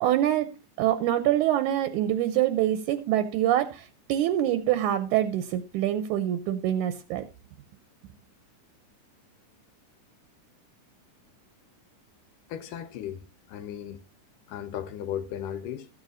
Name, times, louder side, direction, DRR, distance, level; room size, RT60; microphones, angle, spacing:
voice 1, 0.0-7.3, right 12 dB, 75° right, 1.9 m, -25 dB
voice 2, 12.5-14.0 14.5-15.9, left 10 dB, 85° left, 2.3 m, -36 dB
14.0 x 8.9 x 2.6 m
omnidirectional pair, 3.8 m